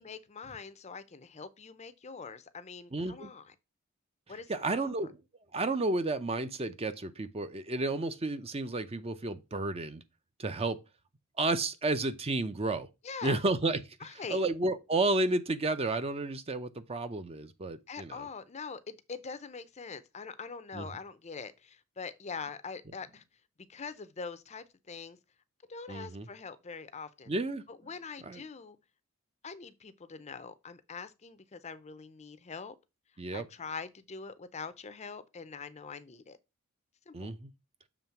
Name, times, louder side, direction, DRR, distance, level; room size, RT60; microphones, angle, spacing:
voice 1, 0.0-3.5 4.3-4.9 13.0-13.4 14.0-14.4 17.9-23.2 23.7-25.2 25.7-27.3 27.7-28.8 29.4-32.7 33.3-36.4 37.1-37.3, left 5 dB, 30° left, 0.5 m, -43 dB
voice 2, 2.9-3.3 4.5-5.2 5.5-10.0 10.4-10.8 11.4-12.9 13.2-18.3 20.7-20.9 25.9-26.3 27.3-27.6 28.2-28.4 33.2-33.5 37.1-37.5, right 2 dB, 30° right, 0.6 m, -32 dB
7.1 x 3.3 x 5.7 m
head